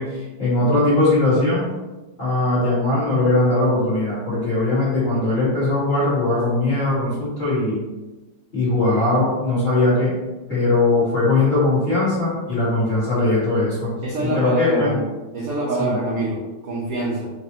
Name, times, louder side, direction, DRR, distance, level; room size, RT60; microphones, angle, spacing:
voice 1, 0.0-1.7 2.2-7.8 8.5-10.1 10.5-13.9 14.2-14.9 15.8-15.9, left 2 dB, 25° left, -10 dB, 1.4 m, -20 dB
voice 2, 14.0-15.1 15.3-17.3, right 2 dB, 70° right, -4 dB, 0.8 m, -25 dB
3.9 x 3.2 x 2.7 m, 1.1 s
omnidirectional pair, 2.3 m